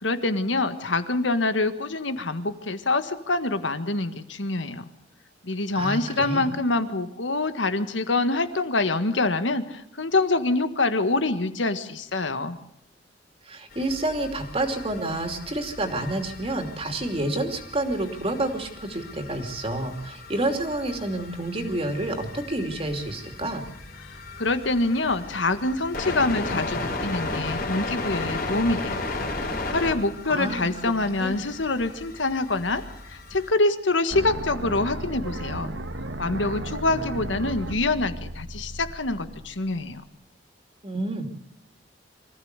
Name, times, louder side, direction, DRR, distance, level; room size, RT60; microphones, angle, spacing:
voice 1, 0.0-4.9 5.4-12.6 24.4-29.0 29.4-35.7 36.2-40.0, left 2 dB, 80° left, 10 dB, 1.7 m, -25 dB
voice 2, 5.7-6.5 13.5-23.6 30.3-30.9 31.2-31.4 40.8-41.3, right 1 dB, 30° right, 6 dB, 2.8 m, -29 dB
sound 1, 13.7-33.5, left 2 dB, 55° left, 3.7 m, -35 dB
sound 2, 34.1-40.1, right 1 dB, 75° right, 1.6 m, -35 dB
25.0 x 15.0 x 8.2 m, 0.72 s
head